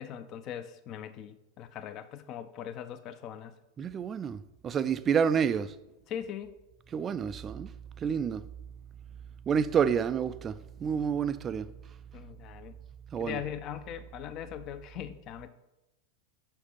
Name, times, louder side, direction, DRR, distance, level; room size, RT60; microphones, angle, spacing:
voice 1, 0.0-3.5 6.1-6.6 12.1-12.8 13.2-15.5, left 9 dB, 35° left, 0.6 m, -40 dB
voice 2, 3.8-4.4 4.6-5.7 6.9-7.7 8.0-8.4 9.5-10.5 10.8-11.7 13.1-13.4, right 7 dB, 25° right, 0.3 m, -28 dB
7.3 x 6.3 x 5.4 m
figure-of-eight pair, 90°, 0 cm